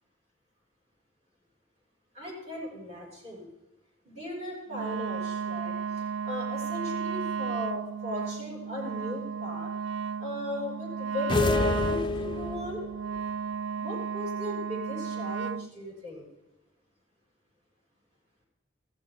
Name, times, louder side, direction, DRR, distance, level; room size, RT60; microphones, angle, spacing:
voice 1, 2.1-3.5 4.0-9.7 10.2-12.8 13.7-16.2, left 1 dB, 35° right, -4 dB, 6.1 m, -38 dB
Wind instrument woodwind instrument, 4.7-15.7, right 6 dB, 65° right, 0.4 m, -34 dB
sound 1, 11.3-12.8, left 3 dB, 25° left, 0.4 m, -27 dB
15.5 x 13.5 x 3.6 m, 1.0 s
head